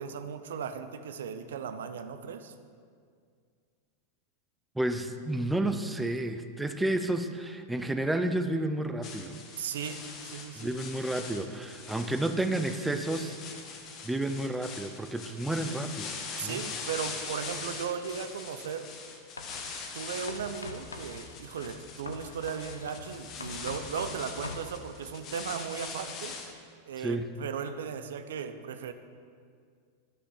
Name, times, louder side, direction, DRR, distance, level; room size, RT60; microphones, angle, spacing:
voice 1, 0.0-2.5 9.6-10.7 16.4-18.9 19.9-26.4 26.9-28.9, right 7 dB, 60° right, 10 dB, 0.6 m, -37 dB
voice 2, 4.8-9.4 10.6-13.4 14.0-16.6 27.0-27.3, right 1 dB, 5° right, 8 dB, 0.6 m, -31 dB
sound 1, 9.0-26.5, left 5 dB, 35° left, 1.1 m, -42 dB
Writing, 19.4-19.8 20.3-24.7, left 3 dB, 75° left, 0.8 m, -43 dB
12.0 x 6.0 x 5.5 m, 2.2 s
figure-of-eight pair, 90°, 0 cm